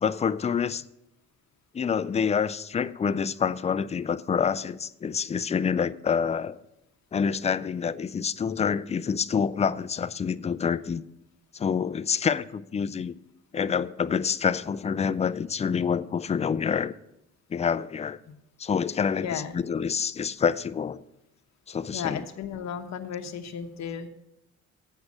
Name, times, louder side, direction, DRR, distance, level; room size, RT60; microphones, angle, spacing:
voice 1, 0.0-0.8 1.7-6.6 7.1-11.0 11.5-13.1 13.5-16.9 17.5-18.2 18.6-21.0 21.7-22.2, left 6 dB, 25° left, 0.4 m, -27 dB
voice 2, 19.2-19.5 21.9-24.1, left 7 dB, 65° left, 1.0 m, -34 dB
8.1 x 6.4 x 7.2 m
cardioid pair, 90°, 30 cm